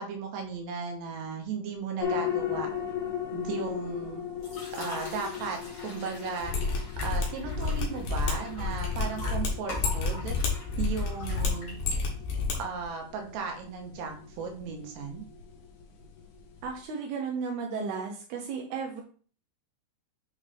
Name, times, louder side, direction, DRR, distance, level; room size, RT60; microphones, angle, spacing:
voice 1, 0.0-2.7 3.3-4.2 4.8-6.6 7.0-10.4 10.8-11.7 12.6-15.2, right 5 dB, 70° right, 2 dB, 2.8 m, -36 dB
sound 1, 2.0-16.8, left 9 dB, 90° left, 3.6 m, -38 dB
sound 2, 4.4-12.1, left 1 dB, 45° left, 1.7 m, -44 dB
Mechanisms, 6.4-12.5 12.8-12.9, left 4 dB, 65° left, 2.5 m, -30 dB
voice 2, 16.6-19.0, right 5 dB, 90° right, 1 dB, 2.2 m, -34 dB
8.6 x 3.5 x 3.4 m, 0.42 s
omnidirectional pair, 5.7 m